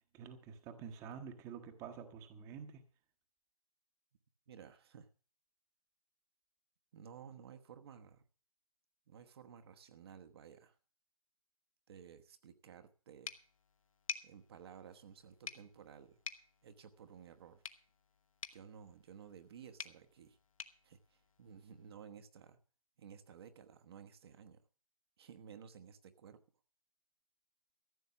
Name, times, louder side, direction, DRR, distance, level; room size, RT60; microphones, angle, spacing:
voice 1, 0.1-2.8, right 7 dB, 15° right, 8 dB, 1.1 m, -48 dB
voice 2, 4.5-5.1 6.9-8.2 9.1-10.8 11.9-13.3 14.2-16.2 16.6-17.6 18.5-20.4 20.8-22.6 23.0-24.6 25.2-26.4, right 7 dB, 45° right, 7 dB, 1.2 m, -55 dB
sound 1, 13.2-21.9, left 6 dB, 65° left, 1.3 m, -51 dB
14.5 x 7.4 x 7.1 m, 0.41 s
figure-of-eight pair, 145°, 19 cm